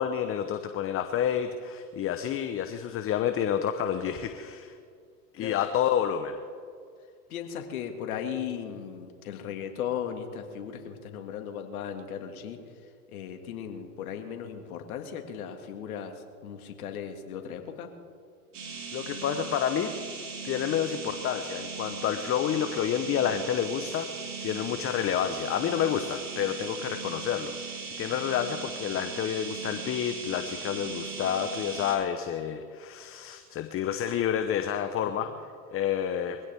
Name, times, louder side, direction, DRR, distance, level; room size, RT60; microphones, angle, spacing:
voice 1, 0.0-4.7 5.3-6.4 18.9-19.9 20.4-24.1 24.4-35.3 35.7-36.4, left 9 dB, 30° left, 8 dB, 1.0 m, -29 dB
voice 2, 7.3-12.6 13.1-16.1 16.4-17.9, left 8 dB, 70° left, 5 dB, 2.2 m, -36 dB
sound 1, 18.5-32.0, right 5 dB, 75° right, 4.9 m, -38 dB
23.5 x 16.5 x 3.6 m, 2.2 s
hypercardioid pair, 95°, 45 cm